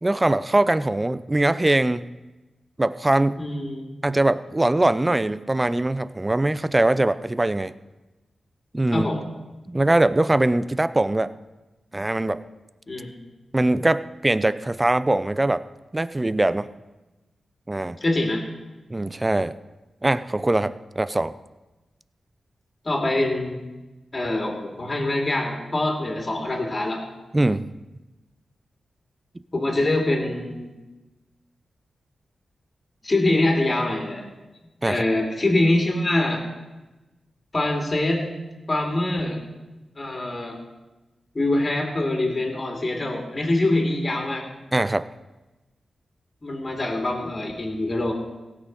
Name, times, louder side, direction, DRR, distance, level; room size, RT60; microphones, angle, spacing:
voice 1, 0.0-2.0 2.8-3.4 4.0-7.7 8.7-9.1 9.7-11.3 11.9-12.4 13.5-15.6 15.9-16.7 17.7-18.0 18.9-19.5 20.0-21.4 27.3-27.7 34.8-35.0 44.7-45.1, right 2 dB, 20° right, 15 dB, 0.5 m, -22 dB
voice 2, 3.4-3.9 8.9-9.2 12.9-13.2 18.0-18.4 22.8-23.6 24.1-27.0 29.5-30.7 33.0-34.3 34.9-36.4 37.5-38.3 38.7-39.4 40.0-40.6 41.3-44.4 46.4-48.1, left 2 dB, 35° left, 1 dB, 2.5 m, -24 dB
17.0 x 6.3 x 5.4 m, 1.1 s
cardioid pair, 70°, 0 cm